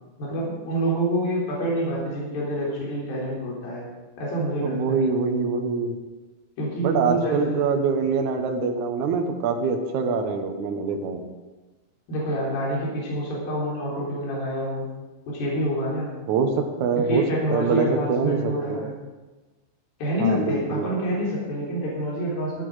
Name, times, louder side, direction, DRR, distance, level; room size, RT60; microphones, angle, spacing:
voice 1, 0.2-3.9 4.2-5.0 6.6-7.6 12.1-14.9 15.3-16.1 17.1-18.9 20.0-22.7, equal, 55° left, -4 dB, 5.4 m, -27 dB
voice 2, 4.6-5.9 6.8-11.2 16.3-17.2 17.5-18.8 20.2-20.9, right 5 dB, 75° right, 4 dB, 1.8 m, -24 dB
13.5 x 12.0 x 5.0 m, 1.2 s
omnidirectional pair, 5.3 m